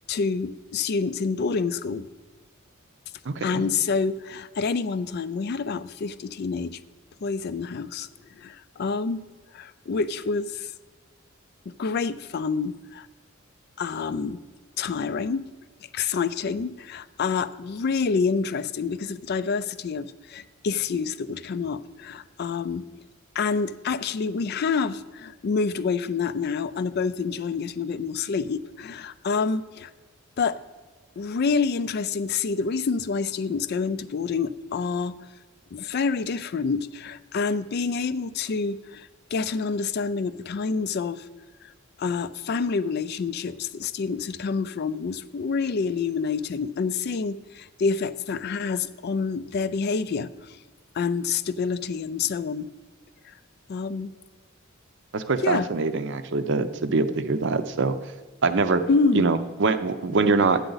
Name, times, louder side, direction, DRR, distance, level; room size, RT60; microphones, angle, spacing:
voice 1, 0.0-2.1 3.4-6.8 7.2-8.1 8.4-9.2 9.5-10.7 11.7-13.1 13.8-14.4 14.8-15.4 15.9-22.9 23.4-29.9 30.4-30.6 31.2-35.2 35.7-41.3 42.0-50.6 50.9-52.7 53.7-54.1 55.4-55.7 58.9-59.3, left 5 dB, 50° left, 15 dB, 0.3 m, -27 dB
voice 2, 3.3-3.6 55.1-58.0 58.4-58.8 59.1-60.6, right 4 dB, 55° right, 10 dB, 0.6 m, -23 dB
12.0 x 9.0 x 3.9 m, 1.3 s
head